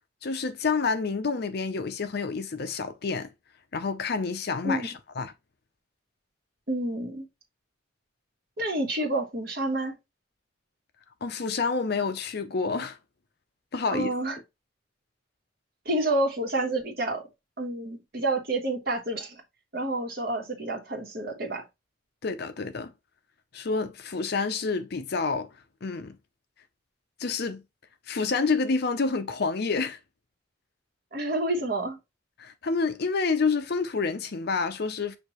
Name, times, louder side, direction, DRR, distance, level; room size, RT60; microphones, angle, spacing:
voice 1, 0.2-3.3 3.7-5.3 11.2-13.0 13.7-14.1 22.2-22.9 23.5-25.5 25.8-26.2 27.2-27.6 28.1-30.0 32.4-35.2, left 4 dB, 55° left, 0.5 m, -28 dB
voice 2, 6.7-7.2 8.6-9.9 13.9-14.4 15.8-17.2 17.6-19.4 19.7-21.6 31.1-32.0, right 2 dB, 50° right, 1.4 m, -29 dB
6.3 x 2.7 x 3.0 m
head